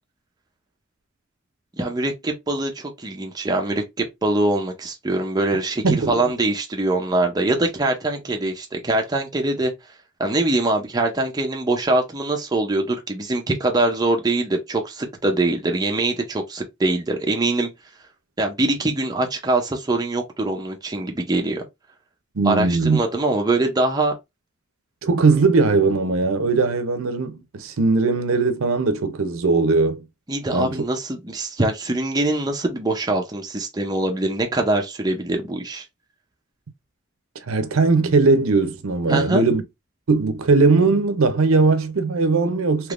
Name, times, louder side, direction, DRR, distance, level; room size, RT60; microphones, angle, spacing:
voice 1, 1.8-9.7 10.2-17.7 18.4-21.6 22.4-24.1 30.3-35.8 39.1-39.4 42.8-42.9, right 2 dB, 20° right, 0.5 m, -23 dB
voice 2, 5.8-6.3 22.4-23.0 25.0-30.1 30.5-30.8 37.5-39.6 40.1-42.9, right 3 dB, 80° right, 0.6 m, -19 dB
3.4 x 2.9 x 2.4 m
head